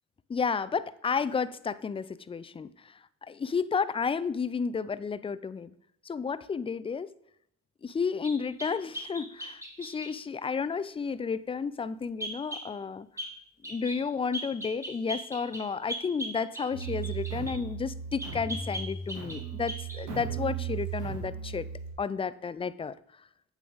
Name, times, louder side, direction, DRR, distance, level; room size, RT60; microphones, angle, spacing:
voice 1, 0.3-2.9 3.2-5.7 6.0-7.1 7.8-13.1 13.7-21.7 22.0-22.9, left 5 dB, 20° left, 16 dB, 0.3 m, -32 dB
sound 1, 8.2-10.1 12.2-12.7 13.2-13.3 13.6-14.0 14.3-17.6 18.2-19.4 19.7-20.0, right 1 dB, 10° right, 2.0 m, -39 dB
sound 2, 16.7-21.9, right 7 dB, 85° right, 2.8 m, -36 dB
8.5 x 7.2 x 3.9 m, 0.73 s
cardioid pair, 90°, 30 cm